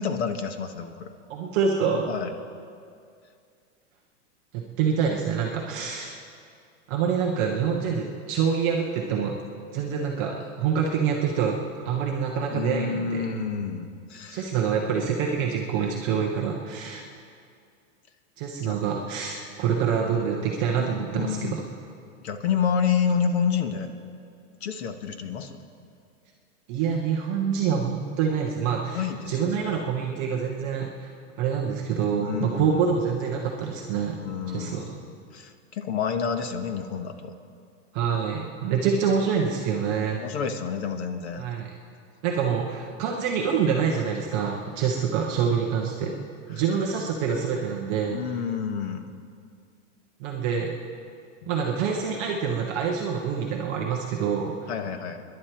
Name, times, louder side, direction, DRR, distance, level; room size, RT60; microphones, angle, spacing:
voice 1, 0.0-1.1 2.1-2.3 12.5-14.5 18.6-18.8 20.8-21.6 22.2-23.9 24.6-25.6 28.9-29.8 32.2-32.9 34.2-37.3 40.1-41.5 48.1-49.1 51.4-51.5 54.7-55.2, left 6 dB, 60° left, 7 dB, 1.4 m, -29 dB
voice 2, 1.3-2.1 4.5-6.2 6.9-9.4 9.7-11.6 11.9-13.2 14.3-17.0 18.4-21.6 26.7-29.0 29.3-31.1 31.4-34.2 34.5-34.9 37.9-40.2 41.4-41.7 42.2-46.2 46.5-48.2 50.2-50.7 51.5-54.7, right 6 dB, 15° right, -2 dB, 0.4 m, -26 dB
26.0 x 11.0 x 4.4 m, 2.3 s
supercardioid pair, 170°, 38 cm